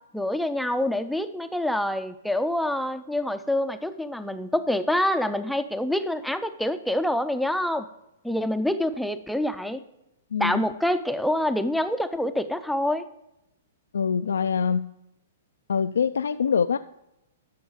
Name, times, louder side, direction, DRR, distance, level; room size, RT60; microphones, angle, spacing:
voice 1, 0.1-7.9 8.2-9.8 10.4-13.1, left 1 dB, ahead, 9 dB, 0.4 m, -26 dB
voice 2, 10.3-10.6 13.9-14.9 15.7-16.8, left 6 dB, 85° left, 10 dB, 0.3 m, -24 dB
11.5 x 6.4 x 4.9 m, 0.88 s
hypercardioid pair, 135°, 0 cm